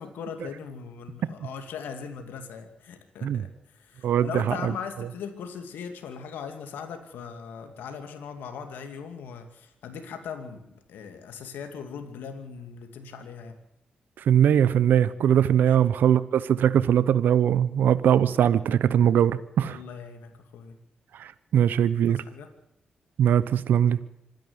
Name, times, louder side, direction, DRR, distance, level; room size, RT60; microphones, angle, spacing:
voice 1, 0.0-13.6 15.5-15.8 19.6-20.8 21.6-21.7 22.1-22.5, left 6 dB, 80° left, 6 dB, 2.4 m, -39 dB
voice 2, 4.0-4.7 14.3-19.8 21.1-22.2 23.2-24.0, right 9 dB, 75° right, 16 dB, 0.8 m, -21 dB
25.5 x 10.5 x 9.5 m, 0.81 s
supercardioid pair, 45°, 3 cm